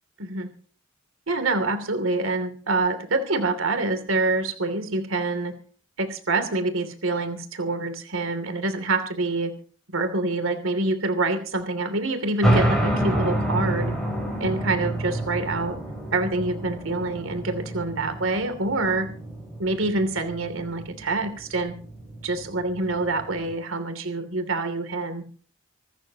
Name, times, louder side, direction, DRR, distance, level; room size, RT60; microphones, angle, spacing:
voice 1, 1.3-5.5 6.0-9.5 9.9-13.9 14.4-15.8 16.1-19.1 19.6-21.7 22.2-25.2, right 2 dB, 90° right, 8 dB, 2.8 m, -26 dB
sound 1, 12.4-23.5, right 1 dB, ahead, 7.7 m, -28 dB
26.5 x 13.5 x 2.9 m, 0.43 s
head